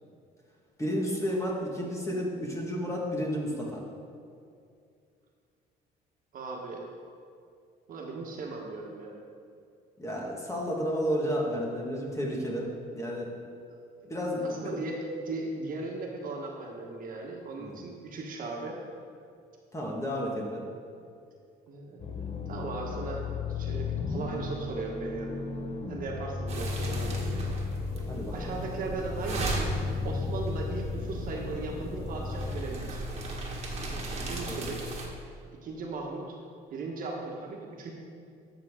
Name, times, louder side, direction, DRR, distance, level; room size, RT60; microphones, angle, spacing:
voice 1, 0.8-3.8 10.0-13.3 14.1-14.8 17.6-17.8 19.7-20.6 28.1-28.5 33.9-34.7, equal, 15° left, -2 dB, 1.8 m, -32 dB
voice 2, 6.3-6.8 7.9-9.1 14.0-14.1 14.4-18.8 20.9-21.0 21.7-25.4 25.9-27.4 28.3-29.7 30.0-33.0 34.2-34.9 35.6-36.4 36.7-37.9, right 3 dB, 55° right, 0 dB, 1.5 m, -37 dB
sound 1, 22.0-32.6, left 4 dB, 35° left, 0.9 m, -35 dB
sound 2, 26.5-35.1, right 2 dB, 40° right, 1.7 m, -37 dB
12.0 x 6.4 x 3.8 m, 2.4 s
cardioid pair, 110°, 17 cm